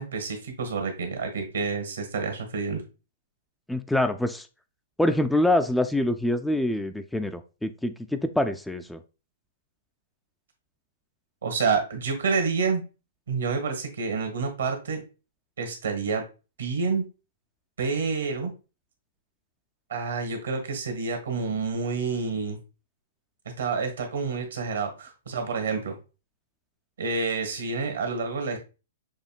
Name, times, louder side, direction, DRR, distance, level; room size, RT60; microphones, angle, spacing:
voice 1, 0.0-2.8 11.4-12.8 13.3-15.0 15.6-16.2 16.6-17.0 17.8-18.5 19.9-22.6 23.6-25.9 27.0-28.6, right 4 dB, 75° right, 5 dB, 1.3 m, -28 dB
voice 2, 3.7-4.5 5.0-9.0, left 1 dB, 5° left, 8 dB, 0.3 m, -25 dB
6.4 x 2.7 x 2.3 m, 0.31 s
hypercardioid pair, 115°, 0 cm